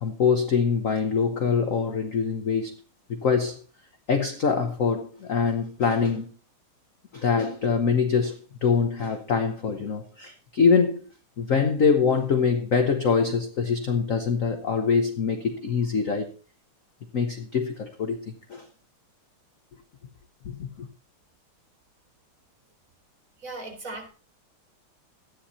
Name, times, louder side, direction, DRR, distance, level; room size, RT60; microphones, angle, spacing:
voice 1, 0.0-2.7 3.1-3.6 4.1-6.3 7.1-11.0 11.4-16.3 17.1-18.2 18.5-18.6 20.4-20.9, left 5 dB, 50° left, 1.0 m, -24 dB
voice 2, 23.4-24.1, right 2 dB, 35° right, 3.1 m, -37 dB
13.0 x 9.9 x 4.2 m
omnidirectional pair, 2.4 m